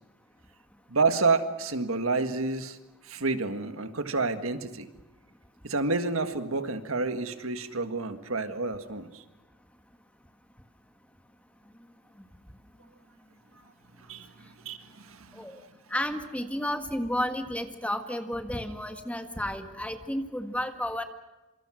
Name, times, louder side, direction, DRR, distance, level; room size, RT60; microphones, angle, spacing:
voice 1, 0.9-2.8 3.0-4.9 5.6-9.2 14.1-14.3 14.6-15.4, right 3 dB, 70° right, 9 dB, 1.7 m, -29 dB
voice 2, 15.9-21.0, left 1 dB, 5° left, 7 dB, 1.7 m, -32 dB
26.5 x 25.5 x 6.4 m, 1.1 s
head